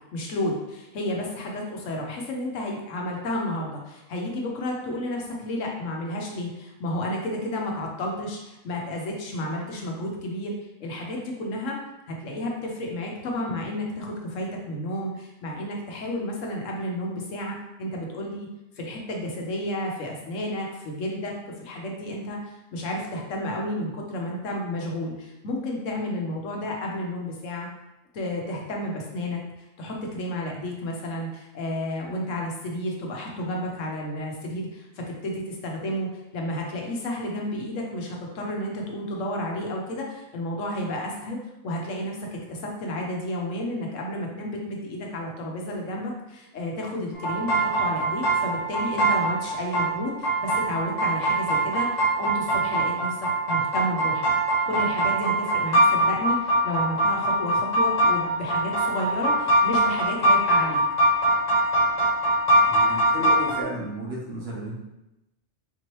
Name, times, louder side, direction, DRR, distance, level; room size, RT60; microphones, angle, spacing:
voice 1, 0.1-10.5 10.8-11.8 12.1-18.5 18.8-21.3 21.6-22.4 22.7-27.7 28.1-29.4 29.8-41.4 41.6-54.2 54.7-60.8, left 1 dB, 80° left, 0 dB, 1.1 m, -31 dB
sound 1, 47.1-63.6, right 1 dB, 35° left, 1.0 m, -22 dB
voice 2, 62.7-64.7, right 1 dB, 55° right, -3 dB, 1.1 m, -33 dB
4.2 x 3.0 x 3.0 m, 0.94 s
omnidirectional pair, 1.3 m